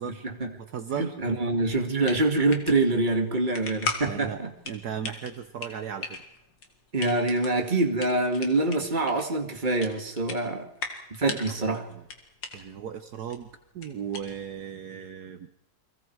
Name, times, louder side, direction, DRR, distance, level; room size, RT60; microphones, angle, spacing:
voice 1, 0.0-0.5 1.0-4.5 6.9-10.7 11.2-11.9, right 2 dB, 25° right, 4 dB, 2.2 m, -25 dB
voice 2, 0.6-1.2 4.0-6.2 11.3-12.0 12.5-13.5 13.7-15.5, right 8 dB, 65° right, 9 dB, 1.5 m, -36 dB
sound 1, 1.7-14.7, left 3 dB, 85° left, 3.1 m, -39 dB
30.0 x 23.0 x 4.7 m, 0.83 s
omnidirectional pair, 1.9 m